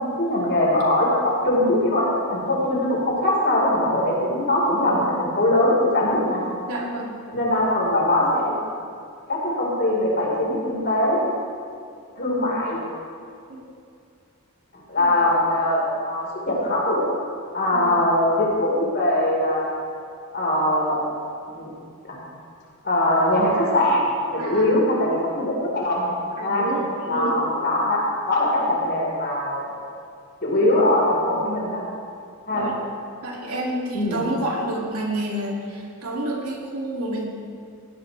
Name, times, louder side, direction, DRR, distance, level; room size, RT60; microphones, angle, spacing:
voice 1, 0.0-6.4 7.3-8.5 9.3-11.2 12.2-12.8 14.9-17.0 17.5-19.7 20.3-21.0 21.5-21.7 22.1-22.2 22.8-24.0 24.3-26.1 26.4-26.7 27.1-29.7 30.4-31.8 32.5-32.7 33.9-34.2, left 1 dB, 50° left, -4 dB, 4.7 m, -21 dB
voice 2, 6.6-7.1 13.5-13.6 15.0-15.2 17.7-18.1 24.4-24.8 26.4-27.4 32.5-32.8 33.2-37.2, right 1 dB, 90° right, -2 dB, 2.9 m, -29 dB
20.0 x 16.0 x 3.5 m, 2.4 s
head